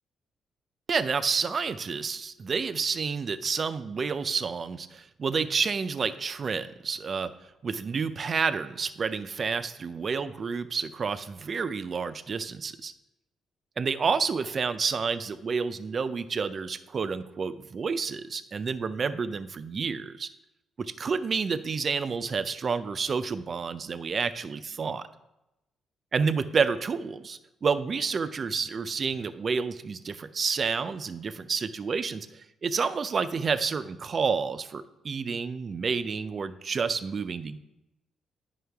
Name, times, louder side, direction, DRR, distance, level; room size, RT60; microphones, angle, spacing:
voice 1, 0.9-7.3 7.6-12.9 13.8-20.3 20.8-25.1 26.1-37.6, right 5 dB, 45° right, 13 dB, 0.4 m, -29 dB
9.4 x 5.5 x 3.4 m, 0.93 s
cardioid pair, 90°, 0 cm